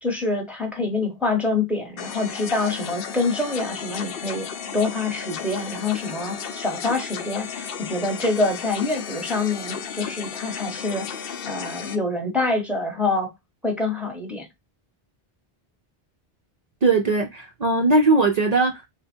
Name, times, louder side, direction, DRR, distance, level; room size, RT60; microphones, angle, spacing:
voice 1, 0.0-4.5 4.7-11.1 11.4-13.3 13.6-14.5, left 3 dB, ahead, 0.9 m, -26 dB
sound 1, 2.0-12.0, left 7 dB, 65° left, 0.7 m, -34 dB
voice 2, 16.8-18.9, right 3 dB, 50° right, 0.5 m, -19 dB
3.3 x 2.2 x 4.3 m
omnidirectional pair, 1.0 m